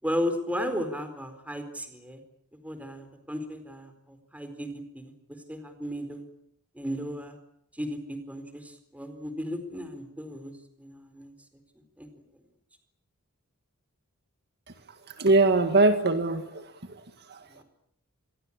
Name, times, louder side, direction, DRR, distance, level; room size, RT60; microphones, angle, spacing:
voice 1, 0.0-2.2 2.6-5.1 5.5-6.2 6.7-7.4 7.8-10.5 10.8-11.3 12.0-12.1, equal, 5° right, 8 dB, 4.3 m, -34 dB
voice 2, 15.2-17.0 17.3-17.4, right 2 dB, 50° right, 8 dB, 2.0 m, -22 dB
27.0 x 21.5 x 8.8 m, 0.74 s
head